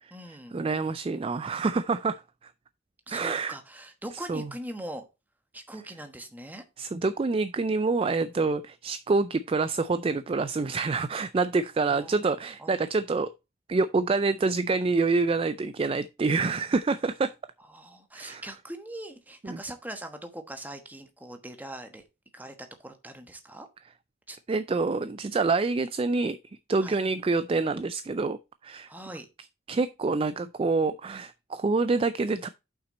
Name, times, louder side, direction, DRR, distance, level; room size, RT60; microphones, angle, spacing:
voice 1, 0.0-0.5 3.1-5.0 5.5-6.6 11.8-12.1 12.6-12.8 17.7-22.0 22.3-23.7 24.3-24.4 26.8-27.0 28.9-29.3, right 1 dB, 10° right, 1.1 m, -41 dB
voice 2, 0.5-2.5 3.1-3.6 4.3-4.5 6.8-13.3 13.7-17.3 18.2-18.4 19.4-19.6 24.5-26.4 26.7-28.4 28.6-28.9 29.7-32.5, right 3 dB, 30° right, 0.3 m, -27 dB
7.3 x 5.8 x 4.1 m
head